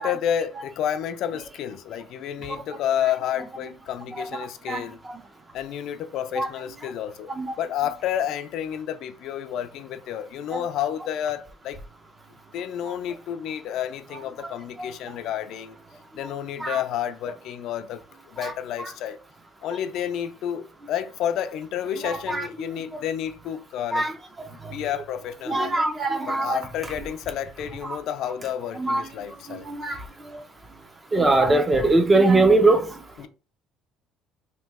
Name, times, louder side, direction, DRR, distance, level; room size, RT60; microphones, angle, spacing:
voice 1, 0.0-5.0 5.5-7.3 7.6-11.8 12.5-15.8 16.1-18.0 18.3-19.2 19.6-24.1 24.5-25.7 26.3-29.7 33.2-33.3, left 10 dB, 55° left, 0.3 m, -30 dB
voice 2, 4.2-4.8 6.4-6.5 7.4-7.5 10.5-10.6 14.8-14.9 16.6-16.8 18.4-18.5 18.8-18.9 22.0-22.5 23.9-24.1 25.5-26.6 27.0-27.1 27.8-28.0 28.8-29.0 29.5-30.0 31.1-32.9, right 2 dB, 15° right, 0.4 m, -22 dB
3.0 x 2.7 x 3.4 m
cardioid pair, 175°, 0 cm